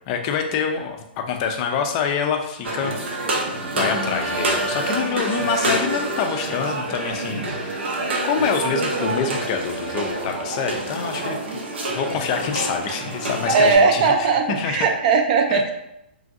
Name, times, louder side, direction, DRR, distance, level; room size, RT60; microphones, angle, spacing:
voice 1, 0.1-3.0 3.8-11.4 11.9-14.9 15.5-15.6, left 6 dB, 35° left, 4 dB, 0.3 m, -26 dB
sound 1, 2.6-13.8, right 2 dB, 80° right, 0.7 m, -26 dB
voice 2, 3.8-4.1 13.5-15.7, right 4 dB, 45° right, 5 dB, 0.4 m, -19 dB
3.0 x 2.6 x 2.4 m, 0.83 s
hypercardioid pair, 145°, 6 cm